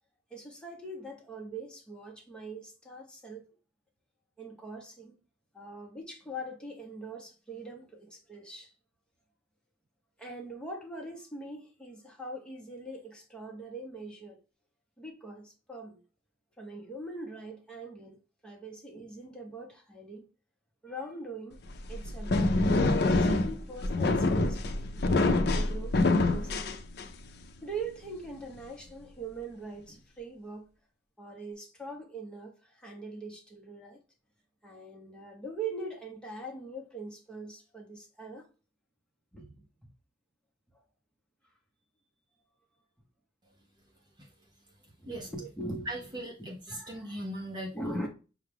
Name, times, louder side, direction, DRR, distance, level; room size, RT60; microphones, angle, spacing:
voice 1, 0.3-3.4 4.4-5.1 5.5-8.7 10.2-14.4 15.0-16.0 16.6-18.2 18.4-20.2 20.8-21.6 21.9-22.5 23.1-25.1 25.5-26.8 27.6-30.7 31.2-34.0 34.6-38.5 39.3-39.7 45.0-45.9 46.7-47.2 47.7-48.1, right 2 dB, 5° left, 1.0 m, -42 dB
sound 1, 21.7-27.3, left 2 dB, 60° left, 0.5 m, -26 dB
voice 2, 45.8-48.1, equal, 25° right, 0.8 m, -39 dB
5.7 x 2.3 x 3.4 m
head